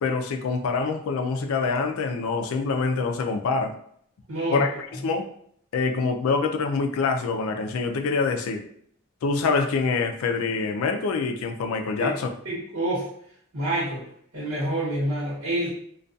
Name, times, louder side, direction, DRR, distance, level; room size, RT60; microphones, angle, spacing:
voice 1, 0.0-3.7 4.5-4.7 5.0-5.3 5.7-8.6 9.2-12.3, left 4 dB, 85° left, 5 dB, 0.3 m, -25 dB
voice 2, 4.3-4.7 12.0-12.1 12.4-13.1 13.5-14.0 14.3-15.7, right 1 dB, 80° right, -7 dB, 1.0 m, -27 dB
2.3 x 2.2 x 2.5 m, 0.65 s
head